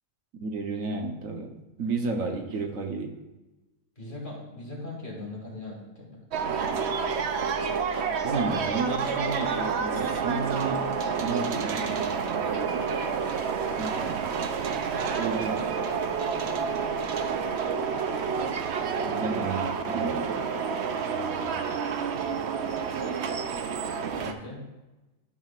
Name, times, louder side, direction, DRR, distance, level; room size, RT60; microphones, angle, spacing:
voice 1, 0.4-3.2 8.2-10.8 11.2-12.1 13.8-13.9 15.1-15.9 19.2-19.6 19.9-20.4, right 3 dB, 80° right, 4 dB, 1.3 m, -32 dB
voice 2, 4.0-6.2 19.0-19.4 24.2-24.6, left 2 dB, 40° left, -3 dB, 2.3 m, -39 dB
sound 1, 6.3-24.3, right 6 dB, 60° right, 0.8 m, -29 dB
11.5 x 6.2 x 2.4 m, 1.1 s
omnidirectional pair, 1.4 m